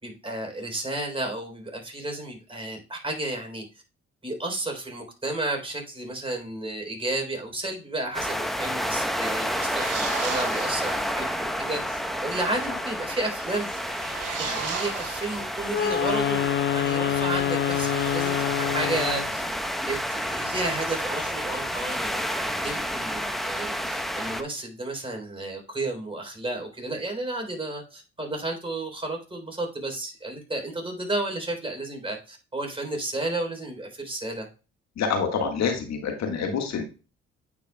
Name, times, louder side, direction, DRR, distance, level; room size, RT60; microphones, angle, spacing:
voice 1, 0.0-3.6 4.2-13.7 14.4-16.5 16.7-19.4 19.9-34.5, right 2 dB, 20° right, 2 dB, 3.6 m, -32 dB
sound 1, 8.1-24.4, equal, ahead, 0.9 m, -30 dB
sound 2, 9.2-11.2 13.6-15.9, right 6 dB, 55° right, 1.7 m, -35 dB
Wind instrument woodwind instrument, 15.7-19.4, left 10 dB, 40° left, 0.7 m, -26 dB
voice 2, 35.0-36.8, left 6 dB, 65° left, 4 dB, 1.6 m, -27 dB
9.2 x 5.1 x 2.2 m, 0.33 s
hypercardioid pair, 55°, 29 cm